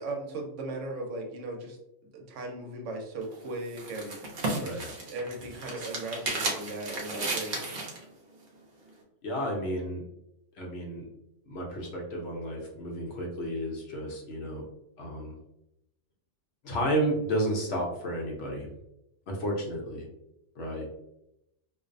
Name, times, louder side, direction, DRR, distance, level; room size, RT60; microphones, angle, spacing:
voice 1, 0.0-1.8 2.0-4.2 4.7-4.8 5.1-7.6, right 2 dB, 80° right, 2 dB, 0.9 m, -37 dB
sound 1, 3.2-8.0, right 2 dB, 60° right, 0.7 m, -34 dB
voice 2, 9.2-10.0 10.6-11.0 11.5-14.7 15.0-15.4 16.6-18.7 19.3-20.0 20.6-20.9, right 1 dB, 65° left, -1 dB, 0.8 m, -32 dB
2.5 x 2.0 x 2.5 m, 0.84 s
omnidirectional pair, 1.3 m